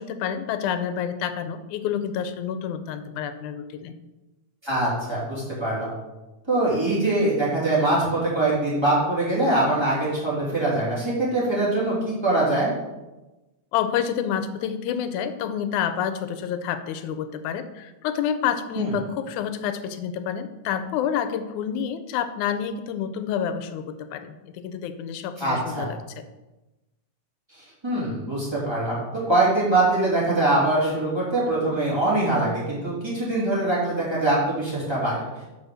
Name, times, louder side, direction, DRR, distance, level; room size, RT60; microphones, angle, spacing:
voice 1, 0.0-3.9 13.7-26.2, left 8 dB, 90° left, 10 dB, 2.0 m, -28 dB
voice 2, 4.6-5.9 6.5-12.7 18.8-18.9 25.4-25.9 27.6-35.2, right 2 dB, 10° right, -7 dB, 2.5 m, -23 dB
6.9 x 4.9 x 6.3 m, 1.1 s
omnidirectional pair, 3.4 m